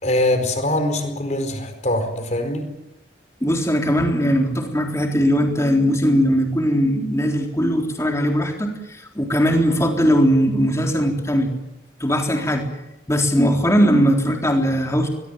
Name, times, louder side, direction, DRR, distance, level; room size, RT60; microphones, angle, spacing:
voice 1, 0.0-2.7, left 1 dB, 40° left, 8 dB, 4.5 m, -22 dB
voice 2, 3.4-11.5 12.0-12.7 13.1-15.1, equal, 15° left, 2 dB, 3.8 m, -19 dB
22.0 x 21.5 x 9.0 m, 0.92 s
head